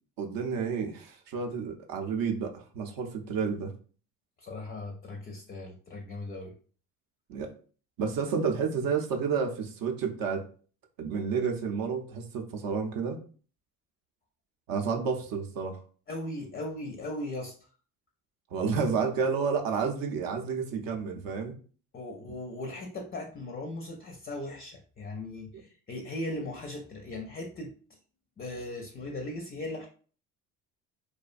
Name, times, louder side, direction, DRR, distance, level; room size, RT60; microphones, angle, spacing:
voice 1, 0.2-3.7 7.3-7.5 8.0-10.5 11.0-13.2 14.7-15.8 18.5-21.6, right 5 dB, 60° right, 3 dB, 0.6 m, -30 dB
voice 2, 4.4-6.6 16.1-17.7 21.9-28.0 28.4-29.9, left 1 dB, 25° left, 3 dB, 0.4 m, -38 dB
2.4 x 2.2 x 2.4 m, 0.41 s
supercardioid pair, 70°, 39 cm